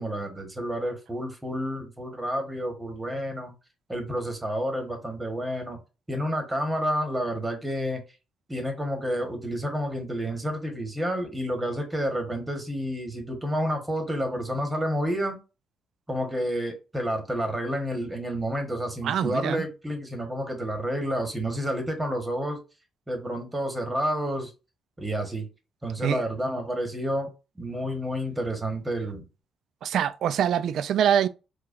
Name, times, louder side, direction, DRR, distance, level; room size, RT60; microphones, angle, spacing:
voice 1, 0.0-3.5 3.9-5.8 6.1-8.0 8.5-15.4 16.1-22.6 23.1-24.5 25.0-25.5 25.8-29.3, equal, 15° right, 1.2 m, -30 dB
voice 2, 19.0-19.6 26.0-26.2 29.8-31.3, right 9 dB, 70° right, 0.3 m, -24 dB
4.6 x 2.3 x 2.5 m
cardioid pair, 90°, 0 cm